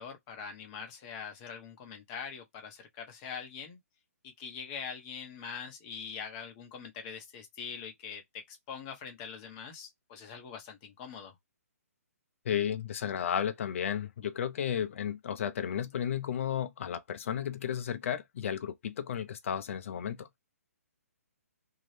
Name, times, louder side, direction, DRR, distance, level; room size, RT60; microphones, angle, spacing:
voice 1, 0.0-3.8 4.2-11.4, left 6 dB, 30° left, 0.9 m, -43 dB
voice 2, 12.4-20.3, left 9 dB, 55° left, 0.6 m, -33 dB
2.7 x 2.3 x 3.2 m
hypercardioid pair, 155°, 8 cm